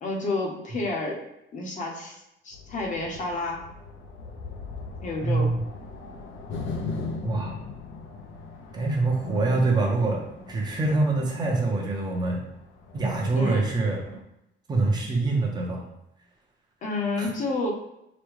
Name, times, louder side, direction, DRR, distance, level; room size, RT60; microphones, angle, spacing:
voice 1, 0.0-1.2 1.5-2.2 2.4-3.7 5.0-5.6 13.3-13.6 16.8-17.7, left 2 dB, 40° left, 0 dB, 0.7 m, -30 dB
sound 1, 2.5-14.2, left 3 dB, 80° left, 0.5 m, -39 dB
voice 2, 5.2-5.6 7.2-7.5 8.7-12.4 12.9-14.0 14.7-15.9 17.2-17.3, right 3 dB, 20° right, -1 dB, 0.7 m, -25 dB
5.0 x 2.2 x 3.1 m, 0.84 s
cardioid pair, 175°, 20 cm